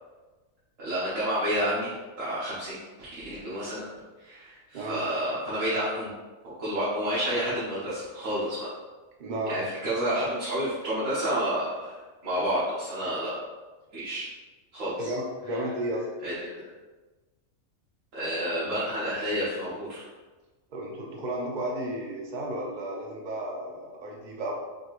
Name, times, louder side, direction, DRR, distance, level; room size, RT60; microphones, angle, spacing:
voice 1, 0.8-3.9 4.2-6.1 6.4-8.7 9.5-11.9 12.2-13.4 13.9-14.2 14.7-15.1 16.2-16.7 18.1-20.0, equal, 75° right, -10 dB, 1.5 m, -30 dB
voice 2, 9.2-9.6 15.0-16.0 20.7-24.5, right 1 dB, 45° right, 0 dB, 0.7 m, -33 dB
4.5 x 2.8 x 3.0 m, 1.2 s
omnidirectional pair, 1.4 m